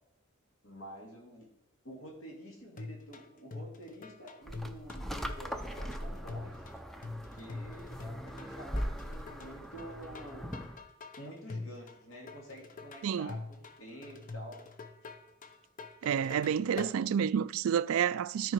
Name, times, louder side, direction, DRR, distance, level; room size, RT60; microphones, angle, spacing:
voice 1, 0.6-1.5 1.8-6.7 7.3-10.5 11.2-14.6 15.0-15.1, right 1 dB, 65° left, 2.3 m, -48 dB
sound 1, 2.8-17.0, left 3 dB, 40° left, 0.7 m, -45 dB
sound 2, 4.5-10.8, equal, ahead, 0.5 m, -40 dB
voice 2, 16.0-18.5, right 8 dB, 70° right, 0.3 m, -29 dB
12.5 x 4.7 x 4.5 m
head